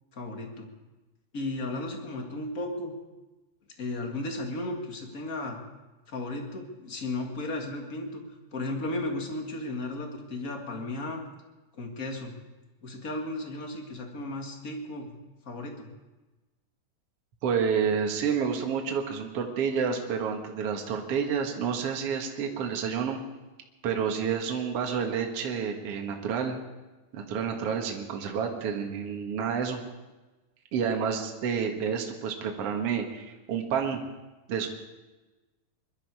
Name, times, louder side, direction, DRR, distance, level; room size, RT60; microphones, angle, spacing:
voice 1, 0.1-0.7 1.3-2.9 3.8-5.6 6.1-8.2 8.5-11.2 11.7-12.3 12.8-15.1 15.4-15.9, left 2 dB, 30° left, 2 dB, 1.7 m, -35 dB
voice 2, 17.4-23.2 23.8-26.6 27.1-29.8 30.7-34.0 34.5-34.7, right 6 dB, 50° right, 2 dB, 2.3 m, -29 dB
22.0 x 12.5 x 4.8 m, 1.2 s
omnidirectional pair, 4.0 m